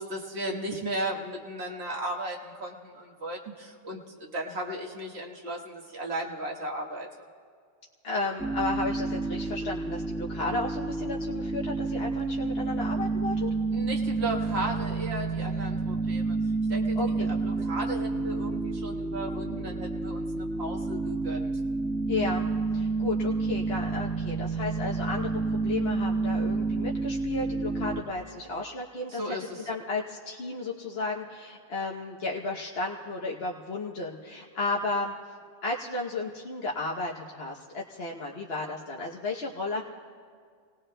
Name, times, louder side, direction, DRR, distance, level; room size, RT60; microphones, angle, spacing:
voice 1, 0.0-7.1 13.7-16.4 16.7-21.5 29.1-29.7, right 1 dB, 75° right, -1 dB, 1.7 m, -35 dB
voice 2, 8.0-13.5 17.0-17.3 22.1-22.5 22.7-29.4 29.7-35.1 35.6-39.8, left 3 dB, 65° left, -3 dB, 1.2 m, -33 dB
sound 1, 8.4-28.0, right 3 dB, 5° left, 1.2 m, -29 dB
30.0 x 18.5 x 2.2 m, 2.1 s
omnidirectional pair, 1.1 m